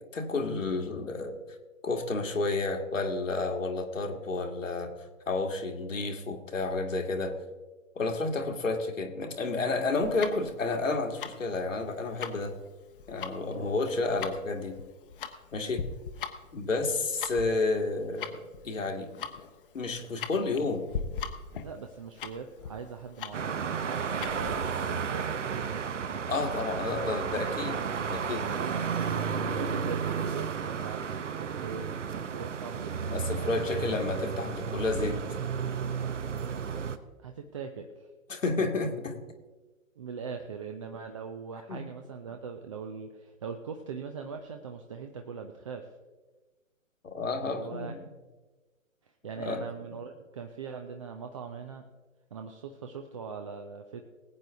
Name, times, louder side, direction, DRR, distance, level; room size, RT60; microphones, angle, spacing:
voice 1, 0.0-1.4 1.8-4.9 5.3-7.3 8.0-12.6 13.1-14.8 15.5-15.8 16.5-19.1 19.7-20.8 26.3-27.8 28.1-28.5 33.1-35.2 38.3-39.2 41.7-41.8 47.0-48.1 49.4-49.6, left 3 dB, 70° left, 4 dB, 1.8 m, -31 dB
Tick-tock, 10.0-24.6, left 6 dB, 40° left, 1.0 m, -40 dB
voice 2, 13.5-13.8 21.6-26.0 28.5-28.9 29.4-33.8 37.2-38.1 40.0-45.9 47.4-47.9 49.0-51.8 52.3-54.0, right 6 dB, 25° right, 5 dB, 0.5 m, -41 dB
sound 1, 23.3-37.0, right 6 dB, 60° right, 1.0 m, -33 dB
20.0 x 8.9 x 3.5 m, 1.3 s
figure-of-eight pair, 125°, 40 cm